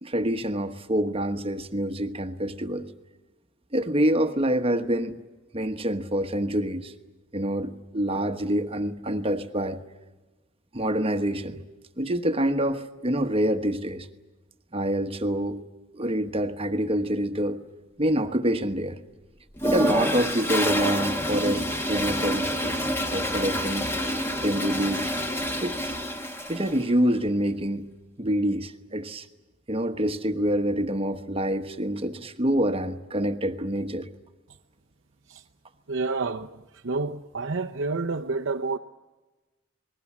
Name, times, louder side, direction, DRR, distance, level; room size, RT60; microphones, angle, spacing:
voice 1, 0.0-2.9 3.7-5.2 5.5-6.9 7.3-9.8 10.7-11.6 12.0-14.1 14.7-15.6 15.9-17.6 18.0-19.0 19.6-22.8 23.1-23.9 24.4-25.1 25.6-25.9 26.5-27.9 28.2-29.3 29.7-34.1, right 1 dB, 30° right, 1.2 m, -26 dB
Toilet flush, 19.6-26.8, equal, 10° left, 1.6 m, -28 dB
voice 2, 35.9-36.5 36.8-38.8, right 3 dB, 70° right, 0.8 m, -29 dB
28.0 x 20.5 x 7.3 m
head